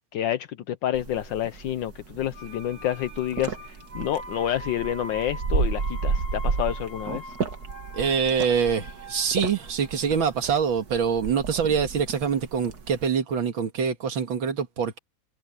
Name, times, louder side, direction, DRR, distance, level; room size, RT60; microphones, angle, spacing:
voice 1, 0.1-7.3, left 11 dB, 75° left, 1.5 m, -29 dB
sound 1, 0.9-13.1, right 4 dB, 55° right, 2.1 m, -32 dB
sound 2, 2.3-12.1 12.3-12.4, equal, 25° right, 6.6 m, -43 dB
voice 2, 7.9-15.0, right 6 dB, 85° right, 2.6 m, -25 dB
omnidirectional pair, 2.1 m